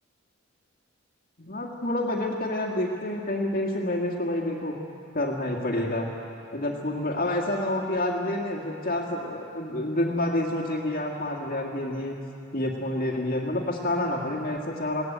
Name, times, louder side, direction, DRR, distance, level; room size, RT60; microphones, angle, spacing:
voice 1, 1.4-4.7 5.1-6.1 6.5-12.1 12.5-15.0, left 1 dB, 45° left, 0 dB, 1.9 m, -28 dB
21.0 x 17.0 x 9.2 m, 2.7 s
head